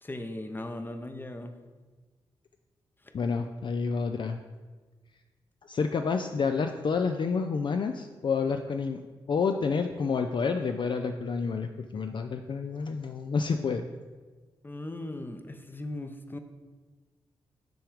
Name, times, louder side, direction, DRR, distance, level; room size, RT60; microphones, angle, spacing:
voice 1, 0.0-1.6 14.6-16.4, left 1 dB, 20° left, 7 dB, 0.7 m, -38 dB
voice 2, 3.1-4.4 5.6-9.0 9.3-13.8, left 5 dB, 45° left, 6 dB, 0.4 m, -29 dB
6.0 x 3.5 x 5.0 m, 1.3 s
supercardioid pair, 40°, 11 cm